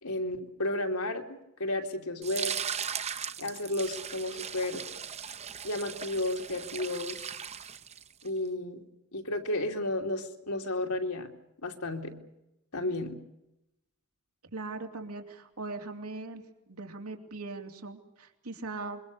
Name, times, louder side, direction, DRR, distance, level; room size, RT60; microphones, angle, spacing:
voice 1, 0.0-2.5 3.4-4.8 5.6-7.2 8.2-8.8 9.1-11.3 11.6-12.2 12.7-13.2, left 1 dB, 80° left, 3 dB, 2.9 m, -32 dB
sound 1, 2.2-8.3, right 7 dB, 30° right, 0.9 m, -38 dB
voice 2, 14.5-16.4 16.7-19.0, right 3 dB, 85° right, 4 dB, 3.2 m, -40 dB
26.0 x 23.0 x 6.8 m, 0.88 s
head